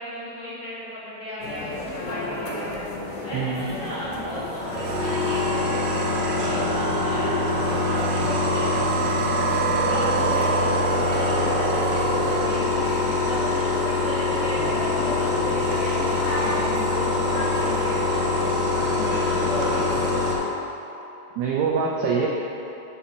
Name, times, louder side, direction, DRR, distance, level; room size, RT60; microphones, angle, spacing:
voice 1, 0.0-2.8 3.2-9.1 9.5-13.4 13.8-18.5 19.0-20.1, equal, 65° left, -11 dB, 1.5 m, -36 dB
sound 1, 1.4-20.3, left 2 dB, 90° left, 1.8 m, -32 dB
voice 2, 3.3-3.7 21.4-22.3, right 5 dB, 85° right, -2 dB, 2.1 m, -24 dB
sound 2, 4.6-20.3, left 1 dB, 65° right, 2.6 m, -24 dB
8.1 x 4.2 x 6.9 m, 2.9 s
omnidirectional pair, 5.0 m